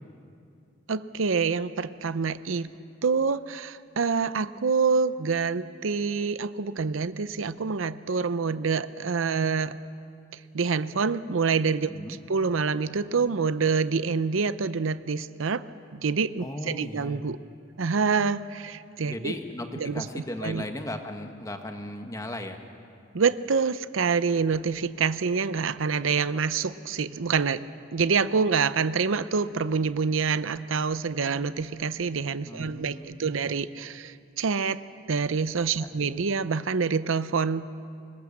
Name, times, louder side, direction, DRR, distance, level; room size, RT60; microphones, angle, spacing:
voice 1, 0.9-2.7 3.0-9.8 10.5-11.9 12.3-15.6 15.9-17.4 17.8-19.3 19.8-20.7 23.1-27.6 27.9-34.8 35.1-37.7, right 5 dB, 85° right, 15 dB, 0.6 m, -26 dB
voice 2, 16.4-17.2 19.0-19.7 19.9-22.6 32.4-33.5 35.8-35.9, left 1 dB, 15° left, 5 dB, 1.4 m, -36 dB
26.0 x 21.0 x 7.3 m, 2.4 s
head